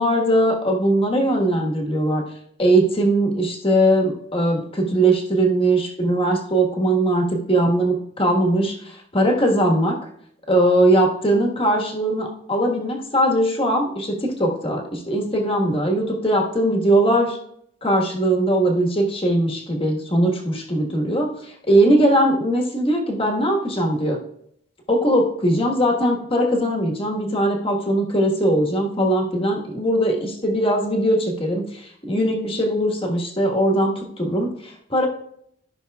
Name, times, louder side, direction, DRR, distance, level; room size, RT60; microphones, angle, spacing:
voice 1, 0.0-2.2 2.6-10.0 10.5-17.4 17.8-24.2 24.9-35.1, right 1 dB, 25° left, 0 dB, 1.4 m, -20 dB
13.5 x 6.1 x 2.3 m, 0.70 s
head